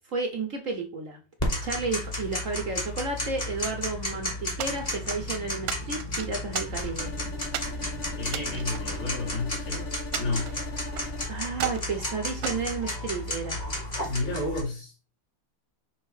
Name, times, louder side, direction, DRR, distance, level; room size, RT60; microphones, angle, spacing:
voice 1, 0.1-1.2 1.6-7.1 11.3-13.6, right 3 dB, 50° right, 1.0 m, -32 dB
Tick-tock, 1.4-14.6, left 1 dB, 20° left, 1.4 m, -33 dB
sound 1, 4.6-5.2 5.7-7.1 7.5-7.8 8.2-9.6 10.1-11.1 11.5-11.9 12.4-13.5, right 11 dB, 80° right, 1.5 m, -36 dB
sound 2, 7.0-11.3, left 2 dB, 60° left, 2.6 m, -40 dB
voice 2, 8.2-9.9 10.1-10.5 14.1-14.9, left 2 dB, 80° left, 3.9 m, -31 dB
6.1 x 3.2 x 4.8 m
omnidirectional pair, 2.4 m